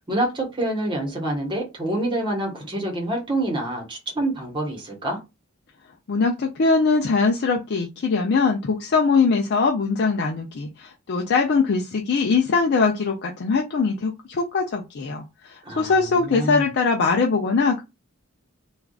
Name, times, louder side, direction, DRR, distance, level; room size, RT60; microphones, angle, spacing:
voice 1, 0.0-5.2 15.6-16.7, right 1 dB, 25° right, 1.2 m, -27 dB
voice 2, 6.1-17.8, left 4 dB, 50° left, 0.4 m, -22 dB
3.4 x 2.4 x 2.3 m
head